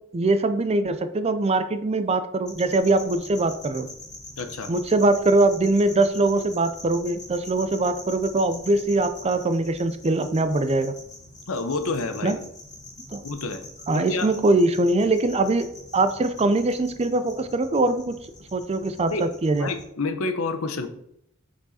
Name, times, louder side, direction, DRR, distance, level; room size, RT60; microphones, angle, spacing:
voice 1, 0.1-3.9 4.7-10.9 12.2-12.4 13.1-13.2 13.9-15.7 15.9-18.2 18.5-19.7, right 2 dB, 30° right, 11 dB, 0.4 m, -22 dB
sound 1, 2.5-19.8, left 1 dB, 15° left, 1.8 m, -44 dB
voice 2, 4.4-4.7 11.5-12.4 13.2-13.6 13.9-14.3 19.1-19.2 19.5-20.9, left 3 dB, 75° left, 8 dB, 0.8 m, -28 dB
6.4 x 4.7 x 4.2 m, 0.74 s
head